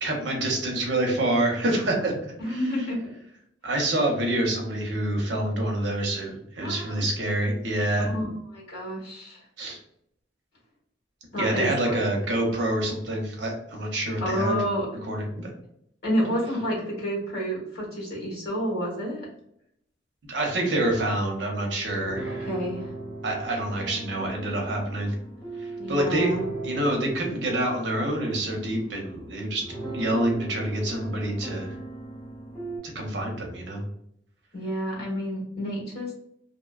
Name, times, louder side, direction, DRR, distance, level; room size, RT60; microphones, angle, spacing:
voice 1, 0.0-2.6 3.6-8.1 9.6-9.8 11.4-14.6 15.1-15.5 20.2-22.5 23.2-25.1 25.6-26.3 26.6-29.6 29.9-31.7 32.9-33.8, right 1 dB, 75° right, 1 dB, 0.7 m, -27 dB
voice 2, 2.4-3.1 6.6-7.1 8.0-9.4 11.3-12.0 14.2-14.9 16.0-19.3 22.3-22.9 25.8-26.4 34.5-36.1, equal, 60° left, -3 dB, 1.2 m, -29 dB
sound 1, 22.0-32.8, right 2 dB, 25° left, 1.3 m, -38 dB
2.6 x 2.2 x 2.3 m, 0.74 s
head